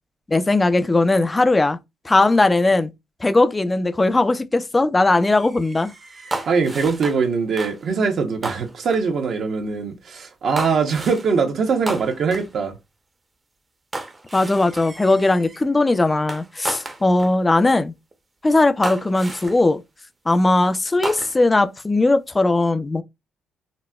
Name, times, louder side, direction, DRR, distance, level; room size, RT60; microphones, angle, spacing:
voice 1, 0.3-1.8 2.0-2.9 3.2-5.9 14.3-17.9 18.4-19.8 20.3-23.0, left 2 dB, 20° left, 0.3 m, -18 dB
sound 1, 5.3-7.3 7.6-7.8 8.4-9.1 10.6-11.3 11.9-12.5 13.9-15.6 16.3-17.4 18.1-18.2 18.8-19.7 21.0-21.6, right 2 dB, 25° right, 0.6 m, -33 dB
voice 2, 6.5-12.8, right 5 dB, 60° right, 0.7 m, -22 dB
4.0 x 2.2 x 2.2 m
cardioid pair, 90°, 0 cm